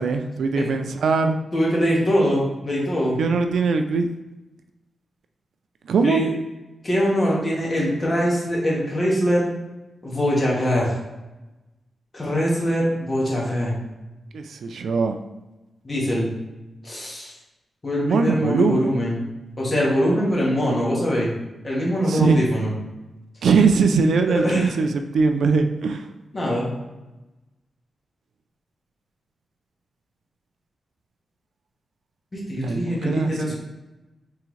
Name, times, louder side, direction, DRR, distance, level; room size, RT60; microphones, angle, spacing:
voice 1, 0.0-1.4 3.2-4.1 5.9-6.3 14.3-15.2 18.0-18.9 22.1-22.4 23.4-26.1 32.6-33.6, right 4 dB, 75° right, 6 dB, 0.3 m, -21 dB
voice 2, 1.5-3.2 6.0-6.3 6.8-9.5 10.0-11.0 12.1-13.7 15.8-16.3 16.8-17.3 17.8-19.2 19.6-21.3 21.6-22.7 24.4-24.7 26.3-26.7 32.3-33.6, equal, 30° left, -5 dB, 1.3 m, -22 dB
3.6 x 3.4 x 3.1 m, 1.0 s
wide cardioid pair, 145°, 0 cm